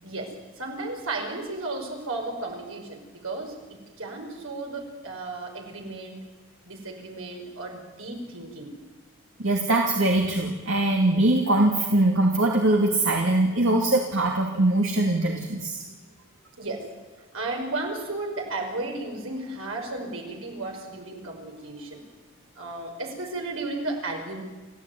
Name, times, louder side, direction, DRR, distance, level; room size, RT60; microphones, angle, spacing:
voice 1, 0.0-6.2 6.6-8.7 16.6-16.9 17.3-22.0 22.5-24.4, right 2 dB, 80° right, 2 dB, 5.6 m, -34 dB
voice 2, 9.4-15.8, right 2 dB, 65° right, 1 dB, 2.5 m, -22 dB
29.5 x 15.0 x 9.5 m, 1.3 s
head